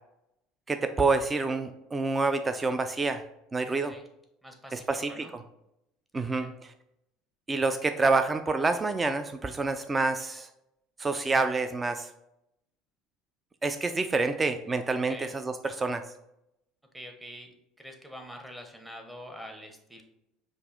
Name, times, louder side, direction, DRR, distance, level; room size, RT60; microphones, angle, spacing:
voice 1, 0.7-3.2 3.5-3.9 4.7-5.2 6.1-6.5 7.5-10.5 11.0-12.1 13.6-16.0, right 3 dB, 20° right, 9 dB, 0.3 m, -27 dB
voice 2, 3.6-4.0 4.4-5.3 6.2-6.5 15.1-15.3 16.9-20.0, equal, 5° right, 3 dB, 0.9 m, -45 dB
5.3 x 2.4 x 3.8 m, 0.84 s
hypercardioid pair, 65°, 0 cm